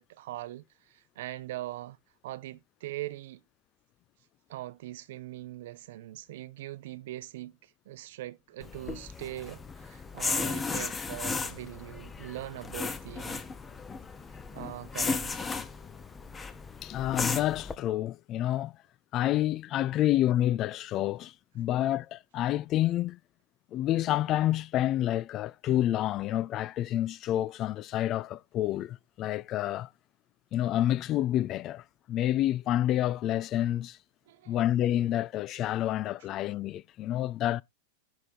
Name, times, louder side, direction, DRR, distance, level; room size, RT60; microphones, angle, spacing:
voice 1, 0.0-2.0 2.2-3.4 4.5-13.4 14.5-15.5 34.3-34.6, right 15 dB, 55° right, 0.6 m, -41 dB
sound 1, 8.6-17.7, left 4 dB, 15° left, 0.8 m, -35 dB
voice 2, 16.8-18.7 19.1-23.2 23.7-29.9 30.5-34.0 34.5-37.6, left 13 dB, 35° left, 0.3 m, -28 dB
10.5 x 3.5 x 4.4 m
figure-of-eight pair, 90°, 0 cm